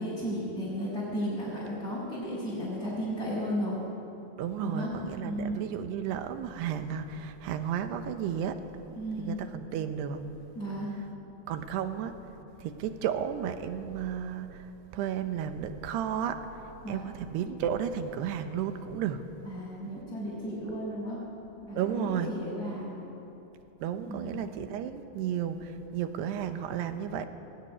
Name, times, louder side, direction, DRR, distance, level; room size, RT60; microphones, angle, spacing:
voice 1, 0.0-3.8 4.6-4.9 5.2-5.6 9.0-9.4 10.5-11.0 16.8-17.1 19.5-21.3 21.6-23.0 24.1-24.5, equal, 20° left, -10 dB, 6.3 m, -34 dB
voice 2, 4.4-8.6 9.2-10.3 11.5-19.3 21.8-22.3 23.8-27.3, right 8 dB, 75° right, 8 dB, 2.8 m, -33 dB
20.5 x 18.5 x 9.9 m, 2.9 s
omnidirectional pair, 5.4 m